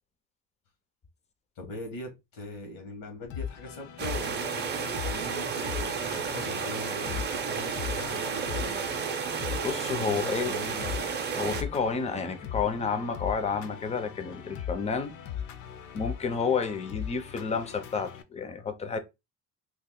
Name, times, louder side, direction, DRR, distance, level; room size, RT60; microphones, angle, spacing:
voice 1, 1.6-9.2 9.9-11.1, left 2 dB, 85° left, 1.4 m, -42 dB
sound 1, 3.3-18.2, left 9 dB, 65° left, 0.6 m, -39 dB
sound 2, 4.0-11.6, right 6 dB, 30° right, 0.6 m, -32 dB
voice 2, 9.6-10.5 11.4-15.1 15.9-19.0, left 5 dB, 20° left, 0.4 m, -30 dB
2.8 x 2.4 x 3.7 m
cardioid pair, 155°, 32 cm